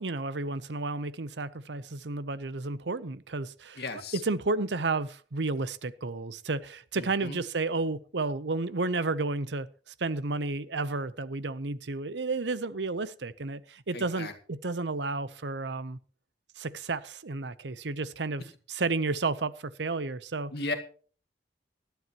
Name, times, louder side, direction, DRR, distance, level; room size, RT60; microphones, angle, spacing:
voice 1, 0.0-3.8 4.1-9.7 10.0-16.0 16.6-18.4 18.7-20.5, right 3 dB, 85° right, 0.8 m, -32 dB
voice 2, 3.8-4.2 7.0-7.4 13.9-14.3 20.5-20.7, left 2 dB, 65° left, 2.2 m, -35 dB
18.5 x 12.5 x 3.0 m
head